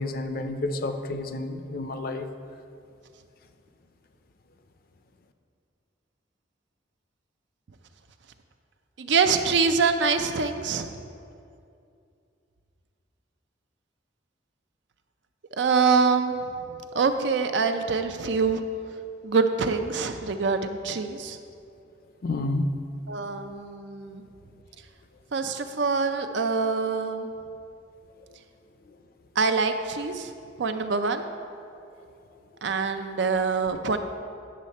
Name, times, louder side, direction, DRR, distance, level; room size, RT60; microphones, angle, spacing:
voice 1, 0.0-2.3 22.2-22.7, left 2 dB, 50° left, 8 dB, 0.5 m, -30 dB
voice 2, 9.0-11.0 15.6-16.5 16.9-18.6 19.2-21.4 23.1-24.2 25.3-27.3 29.4-30.3 30.6-31.2 32.6-34.0, right 5 dB, 70° right, 8 dB, 0.5 m, -25 dB
9.5 x 6.5 x 4.2 m, 2.5 s
head